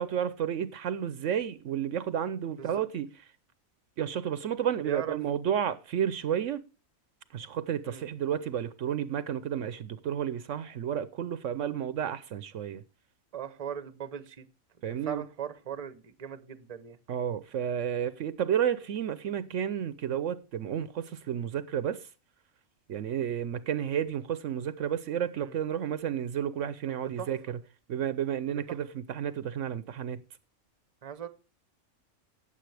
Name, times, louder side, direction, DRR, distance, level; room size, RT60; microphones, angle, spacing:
voice 1, 0.0-3.1 4.0-6.6 7.3-12.8 14.8-15.3 17.1-22.1 22.9-27.6 27.9-30.2, right 9 dB, 70° right, 1.0 m, -31 dB
voice 2, 4.8-5.2 7.8-8.1 13.3-14.5 14.9-17.0 25.4-25.5 27.2-27.3 28.5-28.8 31.0-31.3, right 8 dB, 30° right, 0.9 m, -39 dB
17.0 x 7.1 x 3.3 m
omnidirectional pair, 1.4 m